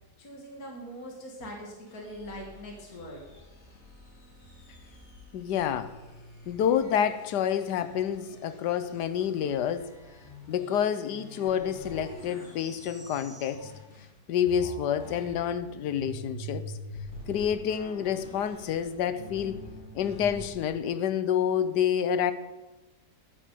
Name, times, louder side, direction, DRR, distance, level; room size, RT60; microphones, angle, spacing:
voice 1, 0.2-3.3, equal, 55° left, 0 dB, 2.6 m, -42 dB
sound 1, 1.9-14.1 14.4-20.5, equal, 40° left, 3.3 m, -46 dB
voice 2, 5.3-6.0 6.5-9.9 10.5-13.7 14.3-16.6 17.3-19.6 19.9-22.3, left 9 dB, 70° left, 12 dB, 1.4 m, -28 dB
12.0 x 9.1 x 9.2 m, 1.1 s
omnidirectional pair, 1.9 m